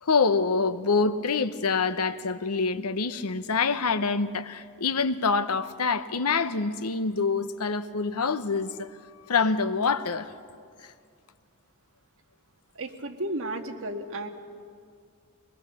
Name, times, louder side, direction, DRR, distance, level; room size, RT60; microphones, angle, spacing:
voice 1, 0.0-8.9 9.3-10.3, left 4 dB, 80° left, 0.9 m, -26 dB
voice 2, 12.7-14.3, right 1 dB, 65° right, 1.6 m, -33 dB
23.0 x 20.5 x 7.0 m
head